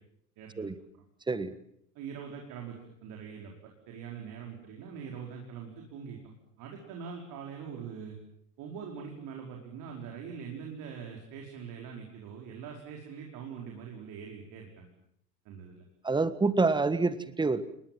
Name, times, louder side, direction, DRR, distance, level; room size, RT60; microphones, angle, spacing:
voice 1, 0.4-1.0 1.9-3.5 3.9-6.2 6.6-8.2 8.6-14.9 15.4-15.8, right 6 dB, 40° right, 0 dB, 5.0 m, -43 dB
voice 2, 16.0-17.6, right 3 dB, 10° right, 15 dB, 1.5 m, -27 dB
30.0 x 20.5 x 7.6 m, 0.73 s
figure-of-eight pair, 85°, 48 cm